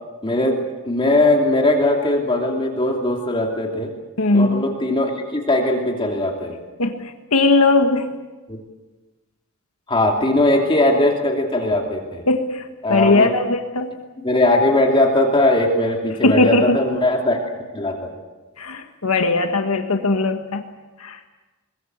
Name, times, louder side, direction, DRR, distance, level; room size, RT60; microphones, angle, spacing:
voice 1, 0.2-0.6 0.8-3.9 4.3-6.5 8.5-8.6 9.9-12.2 12.8-13.3 14.2-17.4 17.7-18.1, left 1 dB, 25° left, 1 dB, 2.8 m, -19 dB
voice 2, 4.2-4.7 6.8-8.2 12.3-13.9 16.2-16.8 18.6-20.6 21.0-21.2, left 2 dB, 80° left, 5 dB, 1.6 m, -19 dB
23.0 x 21.0 x 8.1 m, 1.2 s
head